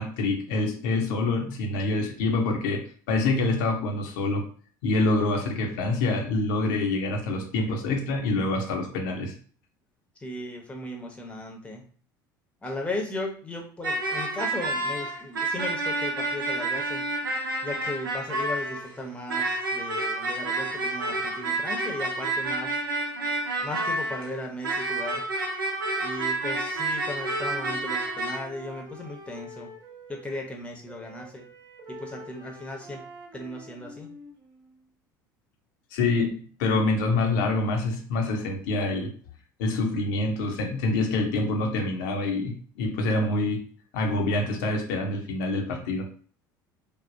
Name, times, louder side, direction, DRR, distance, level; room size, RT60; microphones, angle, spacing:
voice 1, 0.0-4.5 4.8-9.3 35.9-39.1 39.6-43.6 43.9-46.1, left 2 dB, 60° left, 2 dB, 0.6 m, -26 dB
voice 2, 10.2-11.8 12.6-17.1 17.6-22.8 23.6-25.2 26.0-29.7 30.1-31.4 31.9-33.0 33.3-34.1, left 1 dB, 10° left, 1 dB, 0.8 m, -36 dB
sound 1, 13.8-18.9 19.3-24.4 24.6-28.4, right 2 dB, 75° right, 0.6 m, -29 dB
Wind instrument woodwind instrument, 27.0-30.5 30.9-34.9, equal, 35° right, 0.7 m, -46 dB
3.3 x 2.1 x 2.6 m, 0.44 s
figure-of-eight pair, 65°, 11 cm